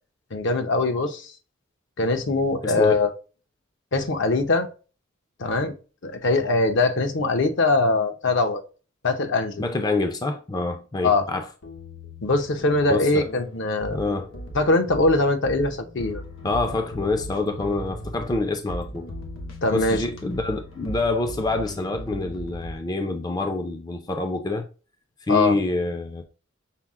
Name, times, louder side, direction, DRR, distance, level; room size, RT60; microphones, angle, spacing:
voice 1, 0.3-1.3 2.0-3.1 3.9-4.7 5.4-5.7 6.0-8.6 9.0-9.6 11.0-11.3 12.2-14.0 14.5-16.2 19.6-20.0 25.3-25.6, left 2 dB, 65° left, 0.7 m, -22 dB
voice 2, 2.6-3.0 9.6-11.5 12.9-13.3 13.9-14.3 16.4-19.1 19.7-24.7 25.2-26.2, left 2 dB, 20° left, 0.4 m, -26 dB
sound 1, 11.6-22.8, equal, 85° left, 1.0 m, -38 dB
5.8 x 2.0 x 3.5 m
head